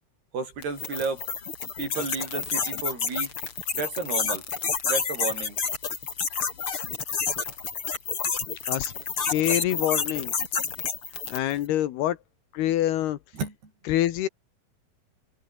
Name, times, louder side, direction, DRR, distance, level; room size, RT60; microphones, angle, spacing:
voice 1, 0.3-1.2 1.8-3.3 3.7-4.4 4.8-5.6 13.3-13.5, right 4 dB, 65° right, 9.8 m, -32 dB
sound 1, 0.6-11.6, left 5 dB, 35° left, 3.5 m, -29 dB
voice 2, 9.3-10.3 11.3-12.2 12.5-13.2 13.9-14.3, left 13 dB, 75° left, 3.1 m, -25 dB
omnidirectional pair, 4.9 m